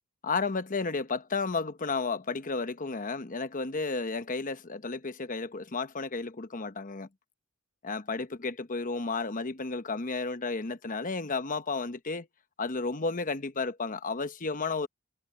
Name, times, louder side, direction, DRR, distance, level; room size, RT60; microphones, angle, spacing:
voice 1, 0.2-7.1 7.8-12.3 12.6-14.9, left 4 dB, 40° left, 1.0 m, -32 dB
head